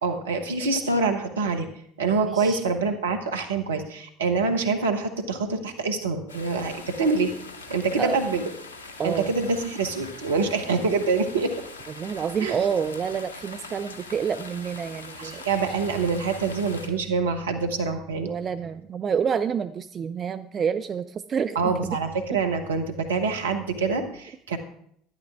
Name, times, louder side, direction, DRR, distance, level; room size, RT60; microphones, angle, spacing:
voice 1, 0.0-1.7 2.0-7.3 7.7-8.5 9.0-11.5 12.4-12.6 15.2-18.3 21.5-24.6, right 4 dB, 75° right, 5 dB, 1.1 m, -25 dB
voice 2, 2.2-2.6 8.0-8.2 9.0-9.3 12.0-15.4 18.2-22.0, right 7 dB, 35° right, 12 dB, 0.4 m, -28 dB
sound 1, 6.3-16.9, left 3 dB, 80° left, 0.8 m, -42 dB
11.5 x 10.5 x 3.6 m, 0.68 s
figure-of-eight pair, 65°, 0 cm